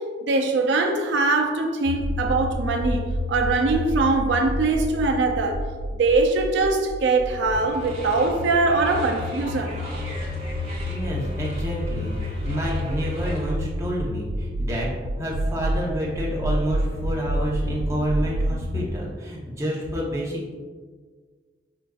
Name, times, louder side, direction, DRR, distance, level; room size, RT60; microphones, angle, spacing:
voice 1, 0.0-5.6 6.0-9.8, right 3 dB, 75° right, 0.4 m, -22 dB
sound 1, 1.9-18.9, equal, 70° left, 0.3 m, -29 dB
sound 2, 7.5-13.5, equal, 35° right, 1.1 m, -37 dB
voice 2, 10.9-14.9 15.2-20.5, equal, 15° right, 0.7 m, -29 dB
5.7 x 2.5 x 2.3 m
head